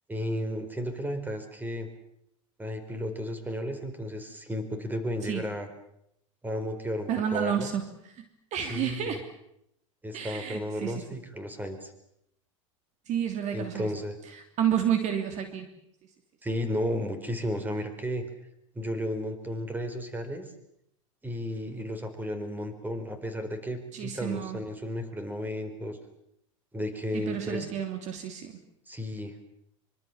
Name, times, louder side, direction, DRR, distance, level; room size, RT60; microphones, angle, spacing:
voice 1, 0.1-1.9 2.6-5.7 6.4-7.7 8.7-9.2 10.0-11.9 13.5-14.2 16.4-18.2 18.7-20.5 21.2-26.0 26.7-27.7 28.9-29.3, equal, 10° right, 9 dB, 4.7 m, -33 dB
voice 2, 7.1-7.9 8.2-8.3 8.5-9.2 10.1-11.2 13.1-13.9 14.3-15.7 23.9-24.6 27.1-28.6, right 9 dB, 45° right, 7 dB, 3.0 m, -30 dB
25.0 x 24.5 x 7.3 m, 0.77 s
hypercardioid pair, 95°, 17 cm